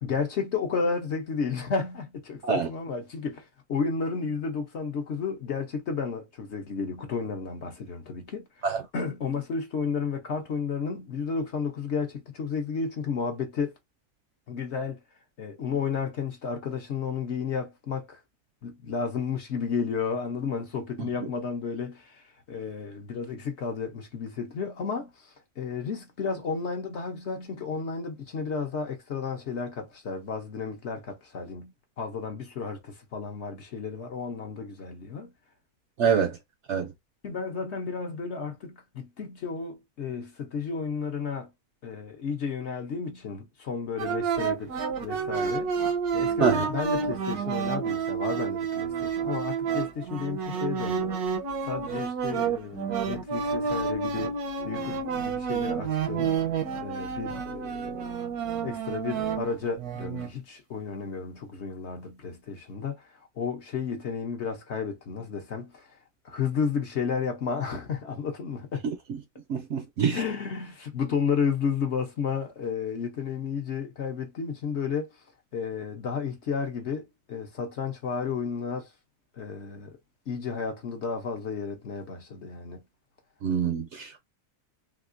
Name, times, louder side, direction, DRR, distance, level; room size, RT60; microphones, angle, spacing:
voice 1, 0.0-8.5 8.9-13.7 14.5-15.0 15.4-18.2 18.6-35.3 36.1-36.3 37.2-41.5 41.8-45.8 46.1-51.2 51.6-54.4 54.6-56.3 56.8-58.3 58.6-66.0 66.2-68.9 70.1-75.1 75.5-78.9 79.3-79.9 80.3-82.8, left 5 dB, 55° left, 0.9 m, -32 dB
voice 2, 36.0-36.4 36.7-36.9 46.4-46.7 69.1-69.2 69.5-70.2 83.4-84.2, right 6 dB, 65° right, 0.7 m, -25 dB
sound 1, 44.0-60.3, right 6 dB, 80° right, 1.2 m, -29 dB
3.6 x 2.4 x 2.5 m
omnidirectional pair, 1.6 m